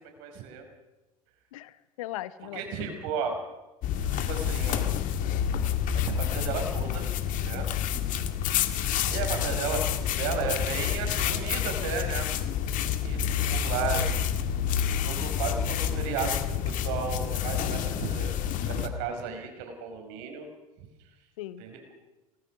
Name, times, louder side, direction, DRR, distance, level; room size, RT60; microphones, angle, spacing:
voice 1, 0.0-0.6 2.5-3.4 4.1-4.9 5.9-7.1 7.4-7.7 9.1-9.8 10.1-12.3 12.9-14.6 15.0-20.5 21.6-21.8, right 6 dB, 55° right, 5 dB, 5.1 m, -34 dB
voice 2, 1.5-2.6 2.9-3.0 7.5-7.8 13.2-13.6 21.4-21.6, left 14 dB, 60° left, 15 dB, 1.2 m, -40 dB
sound 1, 3.8-18.9, left 9 dB, 40° left, 1.9 m, -28 dB
29.0 x 19.0 x 6.2 m, 1.1 s
figure-of-eight pair, 75°, 20 cm